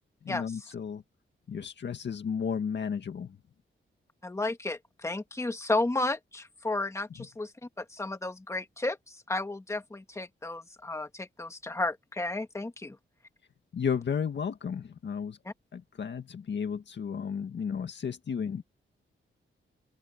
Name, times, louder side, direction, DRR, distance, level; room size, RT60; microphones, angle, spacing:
voice 1, 0.2-1.0 1.5-3.4 13.7-15.4 15.7-18.6, left 7 dB, 60° left, 2.0 m, -33 dB
voice 2, 4.2-7.5 7.8-9.0 9.3-13.0 15.5-15.6, left 2 dB, 15° left, 1.7 m, -33 dB
open air
wide cardioid pair, 155°, 21 cm